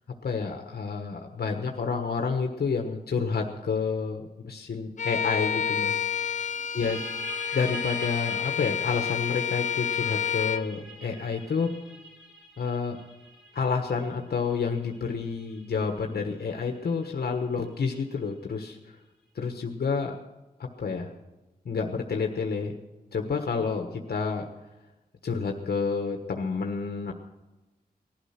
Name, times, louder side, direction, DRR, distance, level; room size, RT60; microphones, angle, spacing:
voice 1, 0.2-6.0 6.7-7.0 7.5-11.7 12.6-13.0 13.5-19.0 19.3-20.2 20.6-21.1 21.6-22.7 23.1-24.4 25.2-27.1, left 5 dB, 80° left, 3 dB, 1.3 m, -29 dB
Bowed string instrument, 5.0-10.7, left 8 dB, 50° left, 0.5 m, -29 dB
sound 1, 6.8-18.2, right 2 dB, 5° right, 4.0 m, -45 dB
19.0 x 12.0 x 5.9 m, 1.1 s
wide cardioid pair, 135°, 16 cm